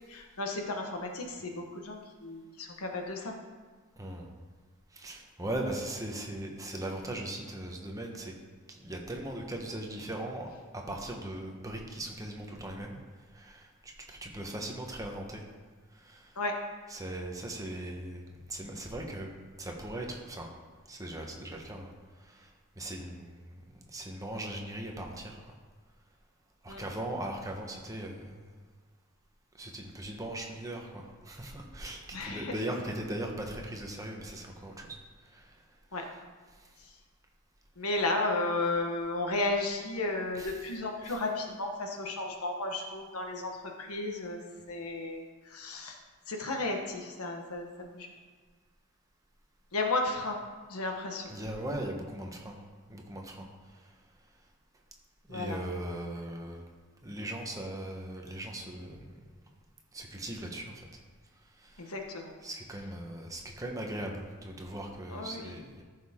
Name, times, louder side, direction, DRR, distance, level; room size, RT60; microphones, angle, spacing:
voice 1, 0.1-3.3 16.4-16.5 26.7-26.8 32.1-32.5 35.9-36.0 37.8-46.0 46.3-48.1 49.7-50.4 50.7-51.3 55.3-55.6 61.8-62.3 65.1-65.5, left 2 dB, 85° left, 2 dB, 1.3 m, -34 dB
voice 2, 4.0-4.3 4.9-8.3 8.7-13.0 13.3-15.4 15.9-16.4 16.9-19.3 19.6-20.5 20.9-21.9 22.2-22.5 22.8-23.6 23.9-25.5 26.6-28.5 29.6-35.0 35.2-35.5 36.0-36.1 36.6-36.7 40.3-40.8 41.0-41.2 51.3-52.6 52.9-53.5 53.7-53.9 55.3-56.6 57.0-59.1 59.9-60.9 61.6-61.9 62.4-65.8, right 1 dB, 15° right, 1 dB, 1.1 m, -39 dB
14.0 x 6.4 x 3.7 m, 1.5 s
head